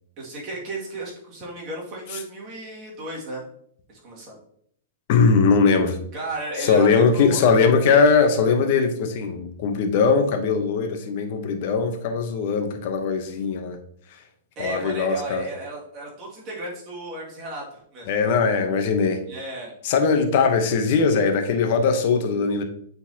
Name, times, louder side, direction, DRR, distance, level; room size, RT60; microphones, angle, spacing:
voice 1, 0.2-3.4 3.9-4.4 6.1-6.9 7.1-7.4 14.6-18.1 19.3-19.7, right 1 dB, 30° right, -3 dB, 2.1 m, -34 dB
voice 2, 5.1-6.0 6.6-13.8 14.1-14.2 14.6-15.5 18.1-19.3 19.8-22.6, left 5 dB, 50° left, 6 dB, 0.9 m, -20 dB
8.5 x 3.9 x 2.8 m, 0.67 s
hypercardioid pair, 150°, 0 cm